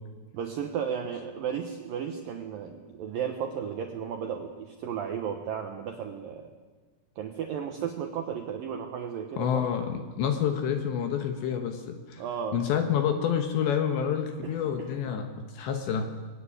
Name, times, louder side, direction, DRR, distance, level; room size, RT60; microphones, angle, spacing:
voice 1, 0.3-6.5 7.2-9.7 12.2-12.6 14.4-14.9, right 8 dB, 90° right, 5 dB, 1.9 m, -34 dB
voice 2, 9.4-12.2 12.5-16.1, left 8 dB, 70° left, 6 dB, 3.2 m, -28 dB
22.0 x 17.0 x 10.0 m, 1.4 s
omnidirectional pair, 5.9 m